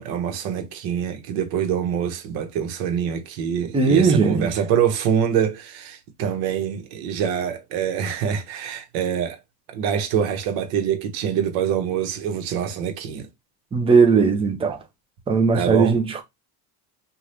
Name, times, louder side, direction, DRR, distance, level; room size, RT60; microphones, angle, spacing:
voice 1, 0.0-9.4 9.7-13.3 15.5-16.0, right 8 dB, 60° right, 1.1 m, -25 dB
voice 2, 3.7-4.5 13.7-14.8 15.3-16.2, right 5 dB, 10° right, 0.6 m, -18 dB
2.7 x 2.4 x 3.3 m
supercardioid pair, 100°, 50 cm